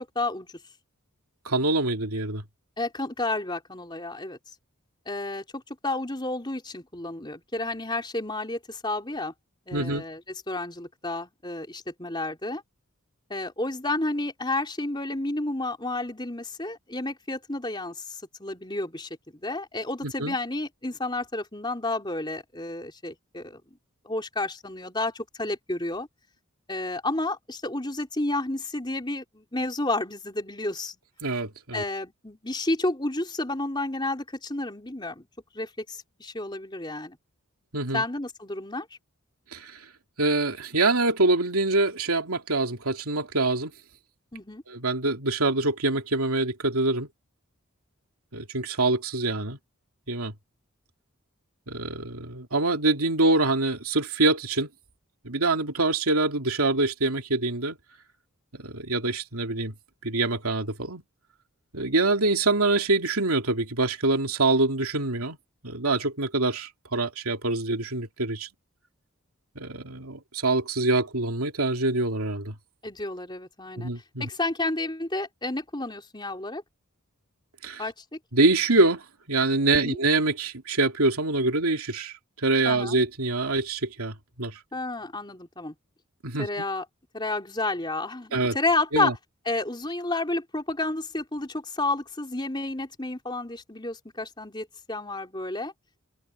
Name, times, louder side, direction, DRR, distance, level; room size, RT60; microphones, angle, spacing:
voice 1, 0.2-0.5 2.8-4.4 5.1-9.3 9.7-12.6 13.3-23.6 24.0-26.1 26.7-31.0 31.7-35.3 35.5-37.2 37.9-38.9 44.3-44.6 72.8-73.9 74.2-76.6 77.8-78.2 79.7-80.0 82.7-83.0 84.7-85.7 86.4-86.8 87.1-89.2 89.5-95.7, left 2 dB, 20° left, 3.9 m, -31 dB
voice 2, 1.4-2.4 9.7-10.0 20.0-20.4 31.2-31.8 37.7-38.0 39.5-39.8 40.2-43.7 44.7-47.1 48.3-49.6 50.1-50.3 51.7-54.7 55.2-57.8 58.6-59.7 60.0-61.0 61.7-65.4 65.6-68.5 69.5-72.5 73.8-74.3 77.6-77.8 78.3-79.0 79.3-82.1 82.4-84.6 86.2-86.6 88.3-88.6 88.9-89.1, right 2 dB, 90° right, 2.9 m, -25 dB
open air
head